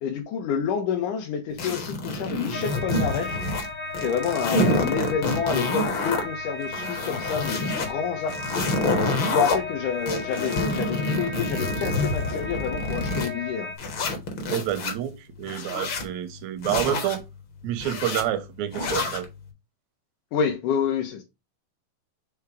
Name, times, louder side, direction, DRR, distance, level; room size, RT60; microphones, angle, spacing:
voice 1, 0.0-3.4 4.0-13.7 20.3-21.2, left 7 dB, 75° left, 2.3 m, -28 dB
sound 1, 1.6-3.7 3.9-6.2 6.6-7.9 8.3-9.6 10.1-13.3 13.8-14.9 15.4-16.1 16.6-17.2 17.8-18.2 18.7-19.2, left 2 dB, 50° left, 1.6 m, -27 dB
sound 2, 2.5-13.8, left 3 dB, 30° left, 0.4 m, -35 dB
voice 2, 14.5-17.2 17.6-19.3, right 12 dB, 80° right, 1.6 m, -28 dB
5.7 x 3.5 x 4.7 m
omnidirectional pair, 3.7 m